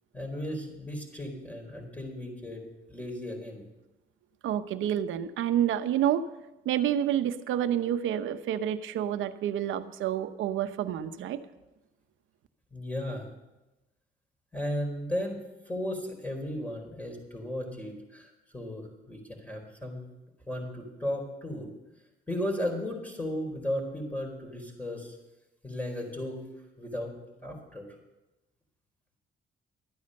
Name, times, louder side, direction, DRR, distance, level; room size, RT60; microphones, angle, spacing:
voice 1, 0.1-2.6 2.9-3.6 12.7-13.3 14.5-15.4 15.6-20.0 20.5-21.7 22.3-25.2 25.6-26.4 26.8-27.1 27.4-27.9, left 1 dB, 10° left, 2 dB, 4.4 m, -35 dB
voice 2, 4.4-6.3 6.6-11.4, right 10 dB, 80° right, 11 dB, 0.9 m, -28 dB
13.0 x 9.5 x 6.6 m, 1.0 s
cardioid pair, 90°, 20 cm